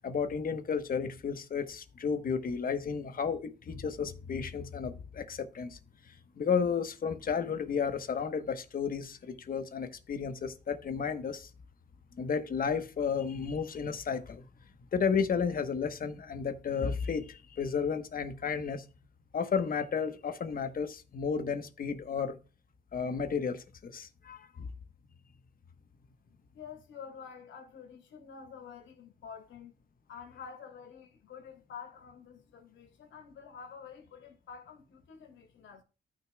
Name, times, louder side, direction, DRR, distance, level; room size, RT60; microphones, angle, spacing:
voice 1, 0.0-5.8 6.1-11.5 12.1-14.5 14.9-18.8 19.3-22.4 22.9-24.5, left 6 dB, 45° left, 1.1 m, -33 dB
voice 2, 26.5-29.7 30.1-35.8, left 6 dB, 70° left, 2.8 m, -48 dB
14.5 x 6.2 x 2.3 m
cardioid pair, 90°, 20 cm